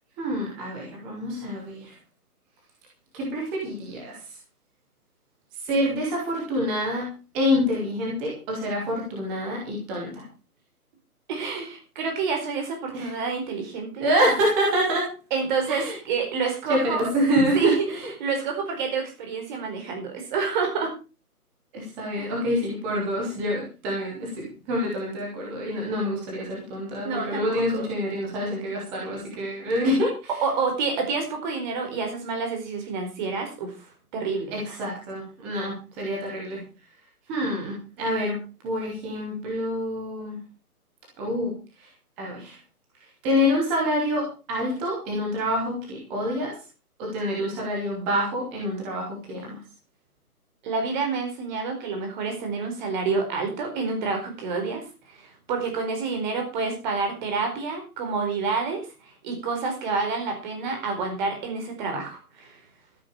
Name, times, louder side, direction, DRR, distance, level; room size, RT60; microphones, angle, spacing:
voice 1, 0.2-1.9 3.1-4.2 5.6-7.1 7.3-10.2 12.9-13.1 14.0-15.1 15.7-16.0 16.7-17.7 18.0-18.1 21.7-30.2 34.5-36.6 37.3-40.4 41.2-41.5 41.8-41.9 42.2-42.6 43.2-46.5 47.0-49.6, equal, 5° right, -3 dB, 0.6 m, -27 dB
voice 2, 11.3-14.1 15.3-17.1 17.5-20.9 22.2-22.3 27.0-27.9 30.4-33.9 34.1-34.6 50.6-54.8 55.1-62.6, right 4 dB, 30° right, 4 dB, 4.6 m, -28 dB
12.5 x 12.0 x 4.6 m, 0.33 s
figure-of-eight pair, 150°, 45 cm